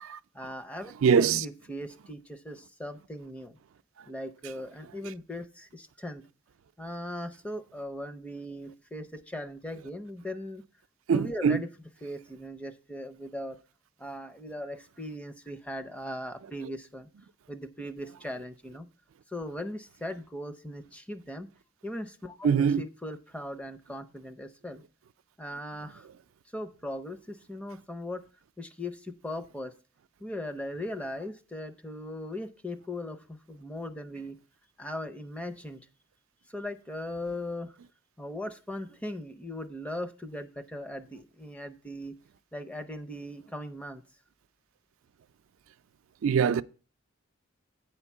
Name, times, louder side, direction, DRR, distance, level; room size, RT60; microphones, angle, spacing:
voice 1, 0.3-3.5 4.1-6.2 6.8-10.6 11.1-11.7 12.0-13.6 14.0-17.1 17.5-18.9 19.3-21.5 21.8-24.8 25.4-26.1 26.5-28.2 28.6-29.7 30.2-34.4 34.8-35.8 36.5-37.8 38.2-42.1 42.5-44.0, left 1 dB, 5° left, 0.5 m, -39 dB
voice 2, 1.0-1.4 11.1-11.6 22.4-22.8 46.2-46.6, right 6 dB, 75° right, 0.4 m, -22 dB
8.8 x 4.4 x 7.1 m
head